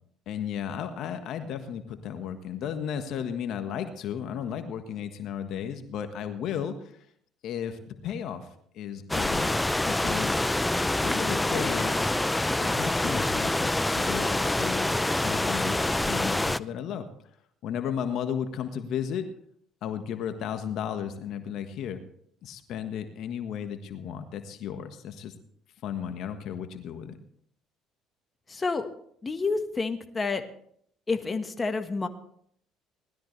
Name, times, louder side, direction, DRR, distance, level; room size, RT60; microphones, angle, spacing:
voice 1, 0.3-7.0 7.4-8.5 8.7-9.6 9.8-10.4 11.0-12.0 12.6-17.1 17.6-19.2 19.8-22.0 22.4-25.3 25.8-27.2, left 8 dB, 65° left, 7 dB, 1.4 m, -34 dB
sound 1, 9.1-16.6, left 1 dB, 10° left, 0.5 m, -26 dB
voice 2, 28.5-28.9 29.2-30.4 31.1-32.1, left 4 dB, 25° left, 7 dB, 1.4 m, -29 dB
19.0 x 13.0 x 3.3 m, 0.66 s
supercardioid pair, 75°, 0 cm